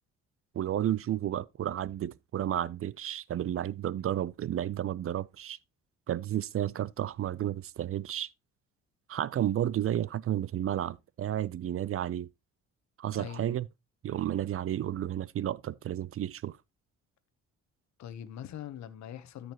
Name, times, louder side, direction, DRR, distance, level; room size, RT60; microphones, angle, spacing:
voice 1, 0.5-5.6 6.1-8.3 9.1-12.3 13.0-13.7 14.0-16.6, right 11 dB, 50° right, 0.5 m, -32 dB
voice 2, 13.1-13.6 18.0-19.5, left 10 dB, 65° left, 1.0 m, -42 dB
13.5 x 5.2 x 2.9 m
cardioid pair, 90°, 30 cm